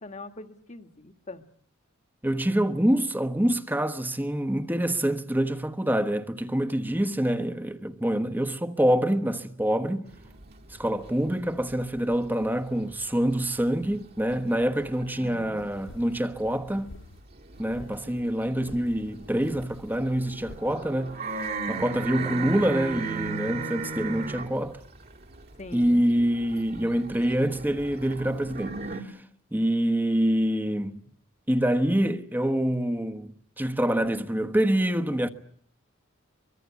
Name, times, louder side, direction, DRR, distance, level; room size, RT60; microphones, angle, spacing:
voice 1, 0.0-1.5 15.1-15.7 25.6-26.1, left 2 dB, 35° left, 1.6 m, -42 dB
voice 2, 2.2-10.1 10.7-16.9 17.6-24.8 25.7-29.2 29.5-31.0 31.5-35.3, right 1 dB, 10° right, 1.2 m, -26 dB
sound 1, 10.1-13.0 13.3-15.9 16.3-29.0, right 4 dB, 50° right, 2.5 m, -37 dB
sound 2, 15.6-17.2 17.5-18.0 18.5-20.8, left 2 dB, 70° left, 1.0 m, -48 dB
24.5 x 23.5 x 8.3 m
head